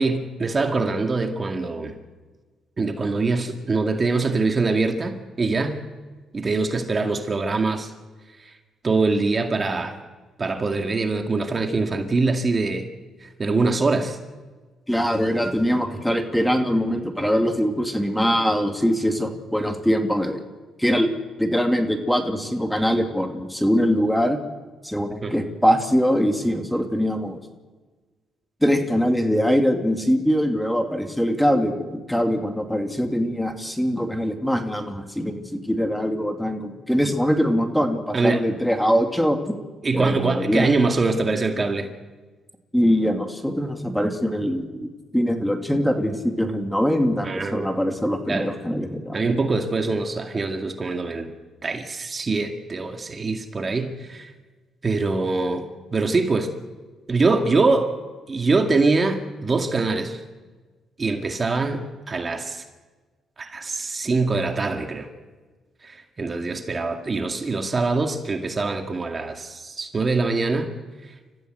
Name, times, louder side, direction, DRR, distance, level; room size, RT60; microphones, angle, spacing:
voice 1, 0.0-1.9 2.8-5.8 6.3-7.9 8.8-10.0 10.4-12.9 13.2-14.2 25.2-25.3 38.1-38.4 39.8-41.9 47.2-47.7 48.3-48.5 49.1-51.3 51.6-54.3 54.8-55.6 55.9-56.5 57.1-57.9 58.3-60.2 61.0-62.6 63.4-65.1 65.8-70.7, right 3 dB, 35° right, 5 dB, 2.2 m, -23 dB
voice 2, 14.9-20.4 20.8-21.1 21.4-24.4 24.8-27.4 28.6-39.5 39.9-40.7 42.7-49.3, equal, 5° left, 5 dB, 2.4 m, -22 dB
29.5 x 15.0 x 7.8 m, 1.3 s
cardioid pair, 90°, 0 cm